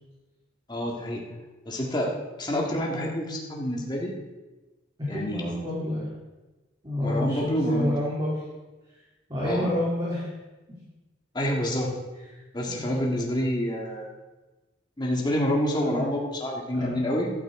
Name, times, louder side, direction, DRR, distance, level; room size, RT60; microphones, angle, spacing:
voice 1, 0.7-1.3 1.7-2.1 2.4-4.1 5.1-5.4 7.0-8.0 9.4-9.7 11.3-12.0 12.5-14.1 15.0-17.3, equal, 20° left, -1 dB, 1.9 m, -27 dB
voice 2, 5.0-6.1 6.8-8.3 9.3-10.3 12.6-12.9 15.7-16.0 16.7-16.9, left 1 dB, 25° right, -8 dB, 3.2 m, -28 dB
13.5 x 12.0 x 3.8 m, 1.1 s
head